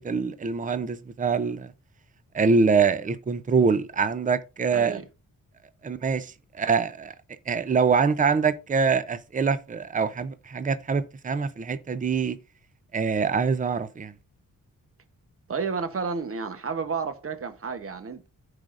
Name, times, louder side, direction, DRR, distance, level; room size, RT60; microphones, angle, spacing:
voice 1, 0.0-1.7 2.3-5.0 5.8-6.3 6.5-7.1 7.5-12.4 12.9-14.1, right 5 dB, 25° right, 0.5 m, -24 dB
voice 2, 4.7-5.0 15.5-18.3, right 5 dB, 40° right, 1.0 m, -31 dB
14.5 x 4.9 x 2.5 m
wide cardioid pair, 155°, 34 cm